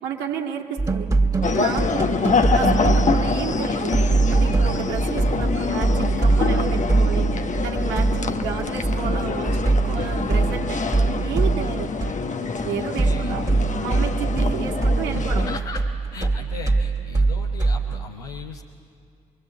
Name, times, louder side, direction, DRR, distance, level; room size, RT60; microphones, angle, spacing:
voice 1, 0.0-1.1 1.6-2.2 2.5-4.0 4.3-11.9 12.6-13.5 13.8-15.5, right 7 dB, 70° right, 0 dB, 2.1 m, -31 dB
sound 1, 0.8-3.7 3.9-12.1 12.4-18.0, right 3 dB, 20° right, 2.4 m, -22 dB
sound 2, 1.4-15.6, left 5 dB, 40° left, 1.2 m, -26 dB
voice 2, 12.7-13.3 15.1-18.6, left 5 dB, 90° left, 1 dB, 0.9 m, -38 dB
25.0 x 22.5 x 8.4 m, 2.3 s
hypercardioid pair, 40°, 19 cm